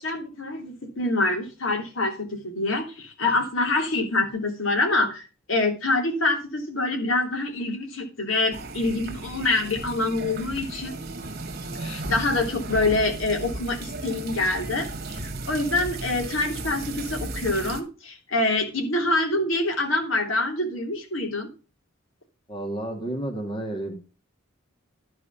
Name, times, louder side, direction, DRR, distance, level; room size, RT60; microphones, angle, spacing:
voice 1, 0.0-11.0 11.8-15.2 15.5-21.5, left 2 dB, 70° left, 2 dB, 2.9 m, -26 dB
sound 1, 8.5-17.8, right 2 dB, 50° right, 1.8 m, -35 dB
voice 2, 22.5-23.9, right 1 dB, 25° left, 1 dB, 2.1 m, -31 dB
12.0 x 4.8 x 7.0 m, 0.33 s
head